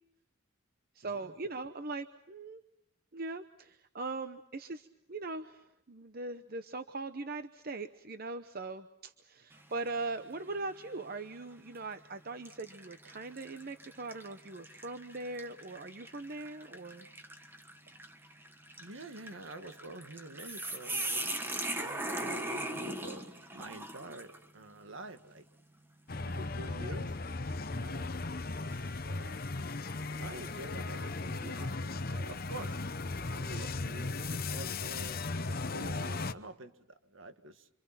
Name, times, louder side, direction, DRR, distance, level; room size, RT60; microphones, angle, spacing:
voice 1, 0.9-2.6 3.1-17.1, right 3 dB, 45° right, 9 dB, 0.8 m, -40 dB
sound 1, 9.5-10.0 10.5-10.6 11.6-11.8 12.4-24.5, right 1 dB, 10° right, 1.5 m, -40 dB
voice 2, 18.8-21.4 21.8-25.4 26.2-27.2 27.7-28.2 28.7-29.4 30.2-32.8 33.3-37.7, right 2 dB, 70° right, 9 dB, 1.7 m, -47 dB
sound 2, 26.1-36.3, left 3 dB, 45° left, 0.8 m, -37 dB
27.0 x 27.0 x 5.9 m, 0.80 s
head